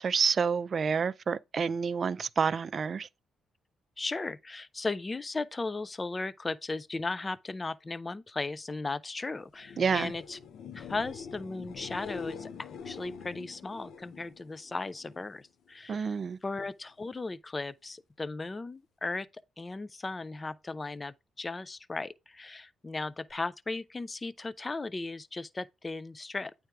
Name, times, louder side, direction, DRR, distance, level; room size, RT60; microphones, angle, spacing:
voice 1, 0.0-3.1 9.8-10.1 15.9-16.4, right 6 dB, 45° right, 0.4 m, -28 dB
voice 2, 4.0-10.4 10.7-19.3 19.6-26.5, left 3 dB, 25° left, 0.4 m, -36 dB
sound 1, 9.5-15.3 15.7-16.2 23.3-23.4, left 6 dB, 70° left, 0.7 m, -44 dB
9.0 x 3.3 x 4.7 m
cardioid pair, 90°, 0 cm